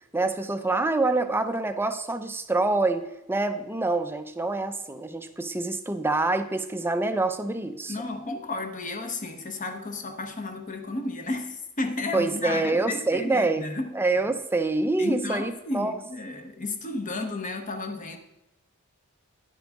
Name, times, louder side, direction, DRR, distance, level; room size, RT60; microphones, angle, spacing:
voice 1, 0.1-8.0 12.1-13.7 13.9-15.9, right 2 dB, 10° right, 8 dB, 0.5 m, -26 dB
voice 2, 7.9-13.9 15.0-18.2, left 2 dB, 35° left, 5 dB, 1.0 m, -32 dB
10.5 x 7.8 x 3.6 m, 0.94 s
head